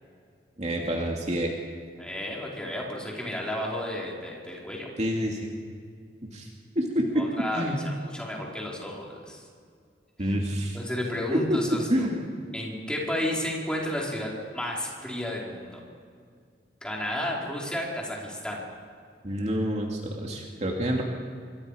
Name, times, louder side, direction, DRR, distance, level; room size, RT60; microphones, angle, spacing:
voice 1, 0.6-1.5 5.0-5.5 6.3-6.5 6.8-7.8 10.2-10.8 11.3-11.6 11.9-12.3 19.2-21.0, equal, 40° right, 0 dB, 2.5 m, -27 dB
voice 2, 2.0-4.9 7.2-9.4 10.2-10.3 10.7-12.1 12.5-15.8 16.8-18.6, left 1 dB, 5° left, -4 dB, 5.0 m, -32 dB
27.0 x 23.5 x 5.1 m, 2.2 s
head